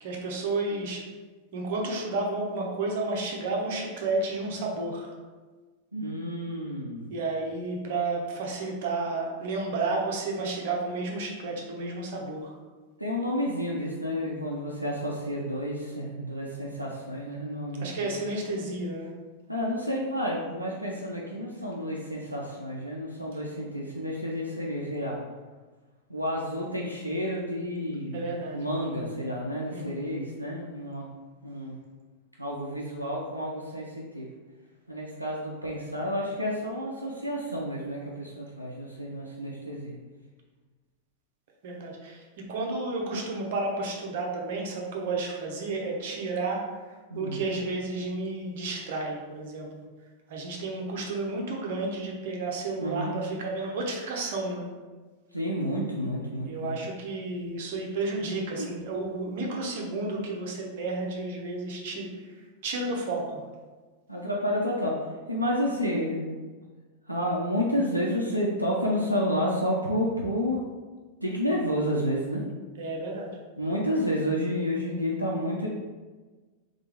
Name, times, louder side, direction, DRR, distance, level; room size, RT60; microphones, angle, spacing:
voice 1, 0.0-1.0 1.5-5.1 7.1-12.5 17.8-19.1 28.1-28.8 29.7-30.0 41.6-42.2 42.5-49.8 50.3-54.7 56.4-62.1 62.6-63.4 72.8-73.3, right 3 dB, 55° right, -1 dB, 0.9 m, -32 dB
voice 2, 5.9-7.1 13.0-18.0 19.5-25.2 26.1-28.2 28.5-31.1 31.4-31.8 32.4-34.3 34.9-40.0 47.1-47.4 52.8-53.1 55.3-56.8 58.6-58.7 64.1-65.0 65.3-66.4 67.1-70.6 71.2-72.4 73.6-75.7, equal, 90° right, -3 dB, 0.5 m, -30 dB
3.6 x 3.5 x 3.4 m, 1.3 s
figure-of-eight pair, 90°, 0 cm